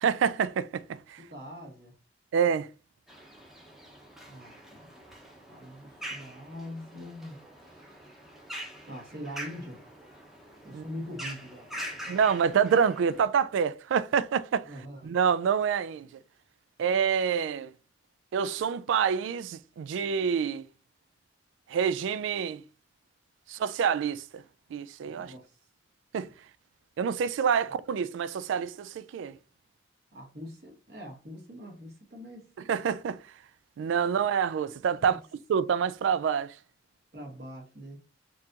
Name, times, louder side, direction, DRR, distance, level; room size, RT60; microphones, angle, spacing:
voice 1, 0.0-1.2 2.3-2.7 10.7-10.8 12.1-14.7 15.0-16.1 16.8-17.7 18.3-20.6 21.7-22.6 23.5-24.4 24.7-25.3 26.1-26.3 27.0-29.4 32.7-33.2 33.8-35.2 35.5-36.6, right 7 dB, 90° right, 0.3 m, -27 dB
voice 2, 1.2-2.0 4.2-5.0 5.5-8.0 8.9-9.8 10.6-12.1 14.6-15.1 25.2-25.6 27.6-27.7 30.1-32.5 35.0-35.2 37.1-38.0, equal, 55° right, 1.4 m, -43 dB
sound 1, 3.1-13.2, right 1 dB, ahead, 0.7 m, -44 dB
4.6 x 2.5 x 2.7 m
head